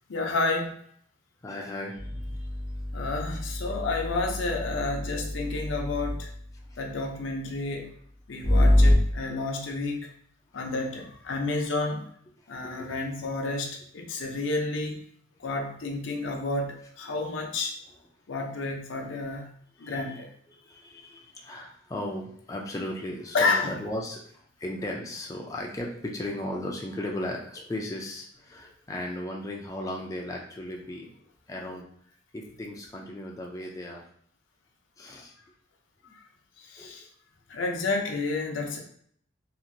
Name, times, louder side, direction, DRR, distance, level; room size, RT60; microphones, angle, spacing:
voice 1, 0.1-0.7 2.9-6.3 6.8-7.9 8.3-10.1 10.5-12.1 12.5-15.0 15.4-17.7 18.3-19.5 19.8-20.3 23.3-23.7 36.6-37.1 37.5-38.8, left 3 dB, 85° left, 2 dB, 0.6 m, -30 dB
voice 2, 1.4-2.5 6.7-6.8 12.4-13.0 13.2-13.3 19.7-20.2 20.5-31.1 31.5-31.9 32.3-34.0 35.0-35.3 36.0-36.1 36.8-37.0, left 1 dB, 15° left, -1 dB, 0.3 m, -36 dB
sound 1, 2.0-6.3 8.4-9.0, left 1 dB, 20° right, 0.6 m, -25 dB
2.9 x 2.4 x 2.6 m, 0.63 s
head